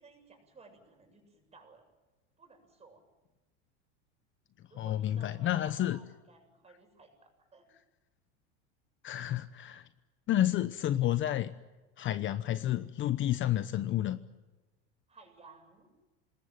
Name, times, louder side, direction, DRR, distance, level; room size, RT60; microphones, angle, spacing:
voice 1, 0.0-1.9 2.4-3.0 4.7-7.7 15.1-15.9, right 3 dB, 20° right, 5 dB, 7.4 m, -57 dB
voice 2, 4.8-6.0 9.0-9.8 10.3-11.5 12.0-14.2, left 12 dB, 35° left, 12 dB, 1.0 m, -30 dB
26.5 x 20.5 x 9.3 m, 1.2 s
supercardioid pair, 135°, 35 cm